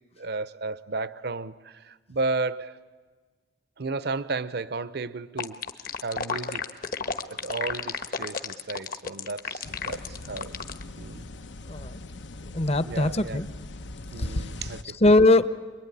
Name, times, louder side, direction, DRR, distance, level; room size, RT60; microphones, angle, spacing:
voice 1, 0.2-2.8 3.8-5.6 6.0-6.6 7.3-10.6 11.0-11.3 12.8-13.4 14.1-15.0, right 3 dB, 60° right, 0.7 m, -33 dB
sound 1, 5.4-10.8, left 5 dB, 50° left, 1.4 m, -31 dB
sound 2, 9.6-14.8, left 1 dB, 80° left, 1.0 m, -38 dB
voice 2, 11.7-12.0 12.5-13.5 14.2-14.5 14.8-15.5, left 2 dB, 35° left, 0.9 m, -21 dB
26.5 x 22.0 x 9.8 m
head